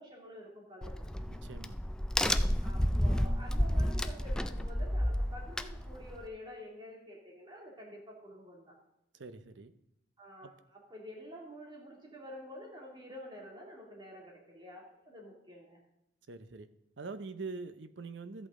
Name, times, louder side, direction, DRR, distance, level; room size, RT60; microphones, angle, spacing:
voice 1, 0.0-1.1 2.6-8.7 10.2-15.8, equal, 25° right, -2 dB, 2.6 m, -49 dB
Crack, 0.8-6.3, equal, 5° left, 0.3 m, -31 dB
voice 2, 1.3-1.8 9.1-9.7 10.4-10.5 16.3-16.7 17.0-18.5, right 4 dB, 80° right, 11 dB, 0.7 m, -44 dB
13.5 x 8.2 x 3.7 m, 0.81 s
head